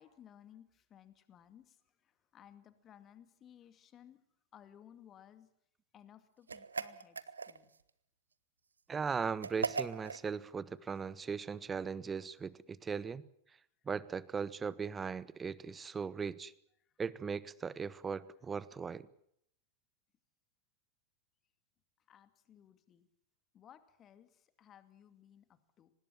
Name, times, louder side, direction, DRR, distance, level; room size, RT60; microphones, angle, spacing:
voice 1, 0.0-4.2 4.5-5.5 5.9-7.7 16.8-16.9 22.1-23.1 23.5-25.9, left 10 dB, 30° left, 11 dB, 2.3 m, -59 dB
sound 1, 6.5-7.8 9.4-10.3, right 5 dB, 75° right, 0.9 m, -38 dB
voice 2, 8.9-13.2 13.9-16.5 17.0-19.1, right 6 dB, 15° right, 21 dB, 1.0 m, -38 dB
25.0 x 19.5 x 7.4 m, 0.71 s
figure-of-eight pair, 90°, 0 cm